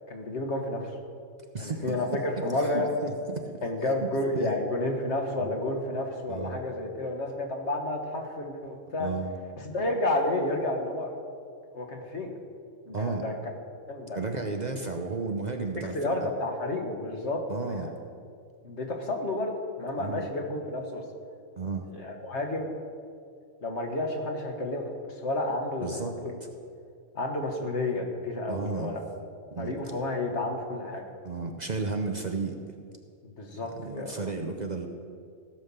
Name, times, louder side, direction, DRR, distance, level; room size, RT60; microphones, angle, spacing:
voice 1, 0.1-1.0 1.6-2.9 3.6-9.1 9.6-11.1 11.7-12.4 12.8-13.3 13.9-14.2 15.8-17.9 18.6-21.0 21.9-22.7 23.6-24.9 25.2-26.3 27.1-29.0 29.6-31.0 33.2-34.2, left 2 dB, 65° left, 3 dB, 1.7 m, -31 dB
voice 2, 1.5-2.5 2.7-3.6 4.0-4.5 5.4-5.6 6.3-6.6 9.0-9.4 12.9-13.2 14.1-16.2 17.5-17.9 20.0-20.3 21.6-21.9 25.8-26.1 28.5-29.0 29.5-29.7 31.2-32.6 33.5-34.9, right 3 dB, 40° right, 4 dB, 0.8 m, -33 dB
16.0 x 5.6 x 7.0 m, 2.3 s
omnidirectional pair, 1.3 m